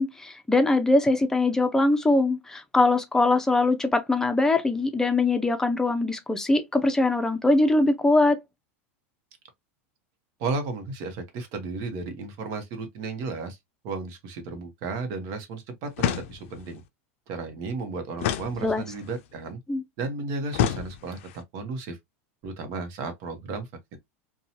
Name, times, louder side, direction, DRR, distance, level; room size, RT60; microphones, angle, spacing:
voice 1, 0.0-8.4 18.6-18.8 19.7-19.8, left 2 dB, 5° left, 0.6 m, -22 dB
voice 2, 10.4-13.6 13.8-16.8 17.3-19.6 20.0-22.0 22.4-24.0, right 3 dB, 55° right, 0.9 m, -34 dB
sound 1, 16.0-16.7 18.2-19.2 20.5-21.4, left 11 dB, 75° left, 0.4 m, -29 dB
2.7 x 2.3 x 2.7 m
supercardioid pair, 115°, 7 cm